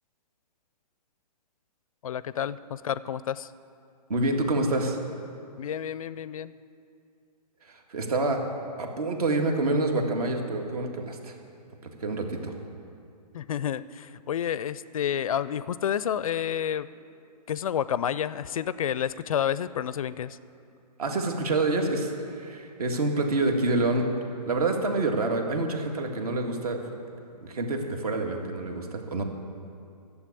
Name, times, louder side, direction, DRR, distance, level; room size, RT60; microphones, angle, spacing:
voice 1, 2.0-3.5 5.6-6.5 13.3-16.9 17.5-20.4, left 9 dB, 55° left, 17 dB, 0.4 m, -30 dB
voice 2, 4.1-5.0 7.6-8.4 8.8-11.4 12.0-12.5 21.0-24.1 24.5-26.8 27.4-29.2, right 2 dB, 60° right, 3 dB, 1.9 m, -27 dB
12.0 x 7.2 x 8.4 m, 2.5 s
hypercardioid pair, 150°, 21 cm